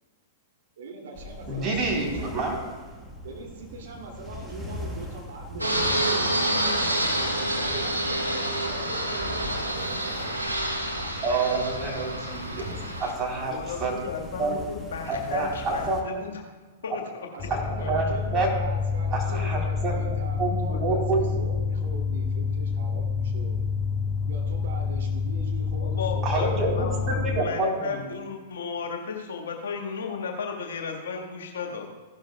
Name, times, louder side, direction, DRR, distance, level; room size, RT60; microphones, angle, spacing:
voice 1, 0.8-2.4 3.2-10.3 10.7-11.1 17.3-23.6 24.3-26.8, right 3 dB, 55° right, 0 dB, 2.7 m, -42 dB
sound 1, 1.1-16.0, left 1 dB, 5° right, 1.5 m, -41 dB
voice 2, 1.5-2.6 11.2-13.9 14.4-14.5 15.1-16.0 17.7-18.5 19.1-19.9 20.4-21.4 26.2-28.0, right 3 dB, 20° right, -2 dB, 3.7 m, -28 dB
Fixed-wing aircraft airplane, 5.6-13.1, right 1 dB, 85° right, 1.4 m, -28 dB
voice 3, 13.3-16.4 16.8-17.5 17.8-18.0 25.8-31.9, left 5 dB, 60° left, 1 dB, 1.7 m, -34 dB
sound 2, 17.4-27.4, left 5 dB, 25° left, 0.6 m, -28 dB
15.5 x 12.0 x 2.3 m, 1.4 s
figure-of-eight pair, 100°, 0 cm